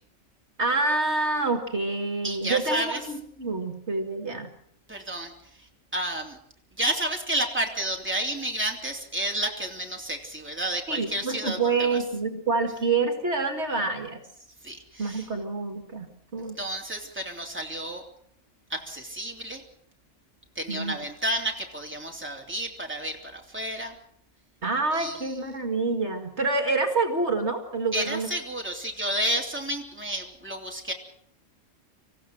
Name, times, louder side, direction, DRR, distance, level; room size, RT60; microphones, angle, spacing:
voice 1, 0.6-4.5 10.9-14.2 15.0-16.5 20.7-21.0 24.6-28.3, right 3 dB, 55° right, 6 dB, 2.4 m, -27 dB
voice 2, 2.2-3.0 4.9-5.3 5.6-6.4 6.8-12.0 14.6-15.3 16.6-18.0 18.7-19.6 20.5-24.0 24.9-25.4 27.9-30.9, right 1 dB, 10° right, 1 dB, 3.3 m, -31 dB
27.0 x 15.5 x 7.8 m, 0.68 s
omnidirectional pair, 1.3 m